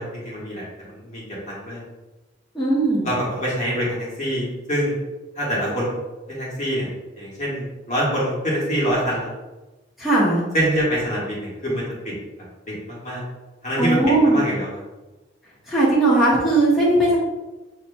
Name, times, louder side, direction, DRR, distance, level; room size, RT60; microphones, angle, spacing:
voice 1, 0.0-1.8 3.0-5.0 5.3-6.0 6.3-6.9 7.1-9.3 10.5-11.8 12.7-13.2 13.6-14.0 14.2-14.7, equal, 40° left, -5 dB, 1.5 m, -25 dB
voice 2, 2.5-3.1 10.0-10.4 13.8-14.4 15.7-17.2, right 2 dB, ahead, -9 dB, 1.2 m, -18 dB
7.0 x 2.9 x 2.2 m, 1.1 s
head